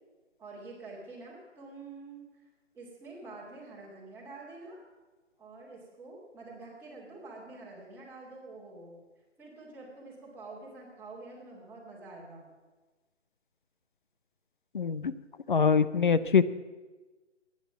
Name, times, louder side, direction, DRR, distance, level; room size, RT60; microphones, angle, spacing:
voice 1, 0.4-2.2 2.7-4.8 5.4-9.0 9.4-12.5 16.1-16.4, right 3 dB, 5° right, -5 dB, 2.6 m, -47 dB
voice 2, 14.7-15.1 15.5-16.4, left 6 dB, 45° left, 14 dB, 0.7 m, -24 dB
21.0 x 9.8 x 6.0 m, 1.3 s
figure-of-eight pair, 145°, 36 cm